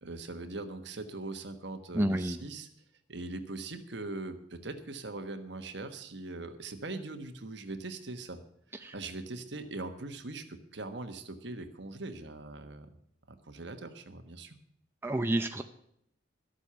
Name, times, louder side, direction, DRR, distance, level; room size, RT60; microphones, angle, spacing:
voice 1, 0.0-2.7 3.1-8.4 8.7-12.9 13.3-14.6, right 2 dB, 65° right, 7 dB, 1.3 m, -41 dB
voice 2, 1.9-2.4 8.8-8.9 15.0-15.6, right 1 dB, 10° right, 6 dB, 0.5 m, -29 dB
13.0 x 8.1 x 7.0 m, 0.72 s
head